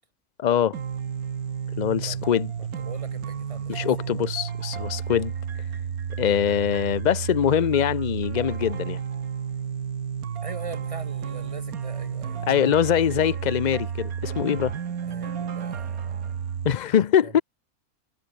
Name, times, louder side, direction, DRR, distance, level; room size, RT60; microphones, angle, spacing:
voice 1, 0.4-0.8 1.8-2.5 3.7-5.3 6.2-9.0 12.4-14.7 16.6-17.4, left 9 dB, 70° left, 0.4 m, -23 dB
sound 1, 0.7-16.7, right 7 dB, 75° right, 1.8 m, -32 dB
voice 2, 2.8-4.3 10.4-12.5 13.0-13.1 15.0-16.4 17.2-17.4, right 4 dB, 25° right, 1.1 m, -42 dB
omnidirectional pair, 1.6 m